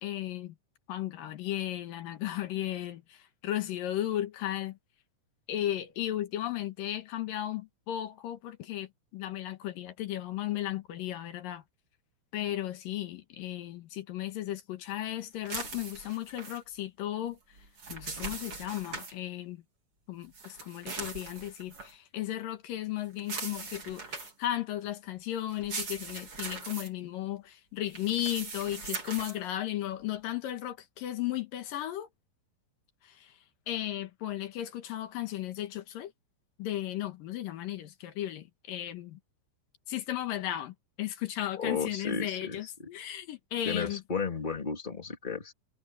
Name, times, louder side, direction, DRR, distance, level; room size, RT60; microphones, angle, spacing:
voice 1, 0.0-0.5 0.9-4.8 5.5-11.6 12.3-17.4 17.9-19.6 20.1-32.1 33.0-33.4 33.7-36.1 36.6-39.2 39.9-44.0, left 13 dB, 80° left, 3.1 m, -35 dB
sound 1, 15.5-16.6 17.6-19.1 20.3-21.9 23.2-24.5 25.5-26.9 27.9-29.4, right 4 dB, 40° right, 5.0 m, -40 dB
voice 2, 41.6-42.7 43.6-45.5, left 5 dB, 15° left, 2.9 m, -33 dB
omnidirectional pair, 3.9 m